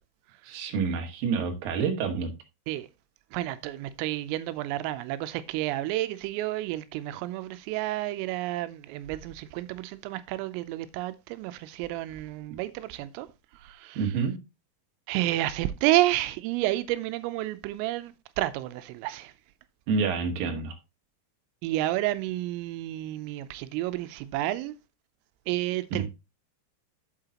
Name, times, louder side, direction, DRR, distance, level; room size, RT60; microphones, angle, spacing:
voice 1, 0.5-2.3 14.0-14.4 19.9-20.7 25.9-26.1, right 5 dB, 55° right, 3.0 m, -28 dB
voice 2, 3.3-13.3 13.5-14.1 15.1-19.3 21.6-24.8 25.5-26.1, right 16 dB, 90° right, 3.3 m, -30 dB
8.8 x 8.3 x 2.9 m
omnidirectional pair, 5.8 m